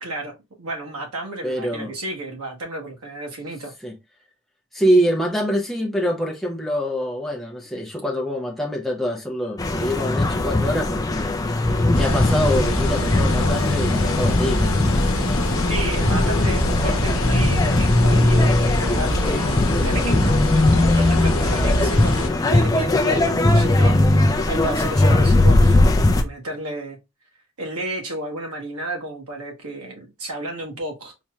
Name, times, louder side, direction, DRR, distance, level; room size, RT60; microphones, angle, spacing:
voice 1, 0.0-3.7 15.7-18.5 18.8-20.2 20.5-24.0 24.5-25.8 26.2-27.0 27.6-31.1, right 1 dB, 85° right, 1.3 m, -32 dB
voice 2, 1.4-1.9 3.8-4.0 4.7-14.9, equal, ahead, 0.7 m, -25 dB
sound 1, 9.6-26.2, left 2 dB, 15° left, 0.3 m, -19 dB
sound 2, 11.9-22.3, left 1 dB, 70° left, 0.8 m, -24 dB
4.1 x 3.1 x 2.3 m
head